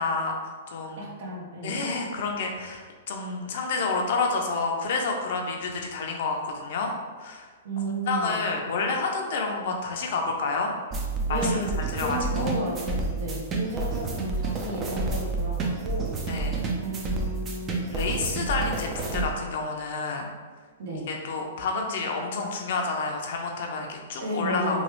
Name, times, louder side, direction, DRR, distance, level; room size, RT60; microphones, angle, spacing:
voice 1, 0.0-1.1 1.6-6.9 7.2-7.5 8.1-10.7 11.3-12.5 16.3-16.6 17.9-20.3 21.1-24.8, left 4 dB, 60° left, 2 dB, 0.5 m, -29 dB
voice 2, 1.0-1.9 7.6-8.4 11.2-16.1 16.8-17.9 20.8-21.2 24.2-24.8, right 1 dB, 60° right, -2 dB, 0.9 m, -33 dB
sound 1, 10.9-19.3, right 3 dB, 25° right, 0.5 m, -29 dB
3.0 x 2.3 x 3.0 m, 1.5 s
hypercardioid pair, 130°, 0 cm